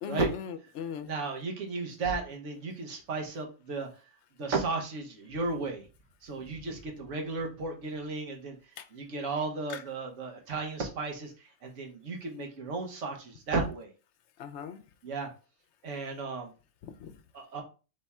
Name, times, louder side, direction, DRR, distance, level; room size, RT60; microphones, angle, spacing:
voice 1, 0.0-1.1 8.8-8.9 9.7-9.8 14.4-14.8 16.8-17.1, left 8 dB, 70° left, 0.9 m, -38 dB
voice 2, 1.0-3.9 4.4-5.9 6.2-8.6 8.9-11.3 11.6-13.9 15.0-15.3 15.8-16.5 17.3-17.6, right 3 dB, 80° right, 1.4 m, -34 dB
3.5 x 3.4 x 4.2 m
omnidirectional pair, 1.2 m